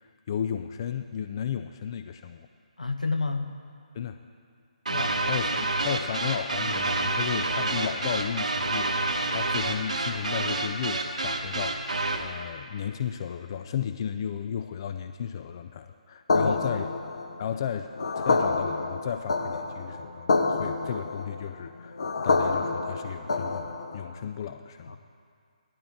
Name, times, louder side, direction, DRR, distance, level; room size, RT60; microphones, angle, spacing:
voice 1, 0.0-2.5 3.9-4.2 5.3-8.9 9.3-16.8 17.4-22.0 22.2-25.0, left 8 dB, 35° left, 8 dB, 0.4 m, -34 dB
voice 2, 2.8-3.5 4.9-5.2 16.3-16.8 24.9-25.0, left 3 dB, 80° left, 6 dB, 1.0 m, -30 dB
sound 1, 4.9-12.3, right 2 dB, 70° right, 1.3 m, -28 dB
sound 2, 16.3-24.1, left 3 dB, 55° left, 0.9 m, -28 dB
16.0 x 12.0 x 3.6 m, 2.3 s
figure-of-eight pair, 140°, 4 cm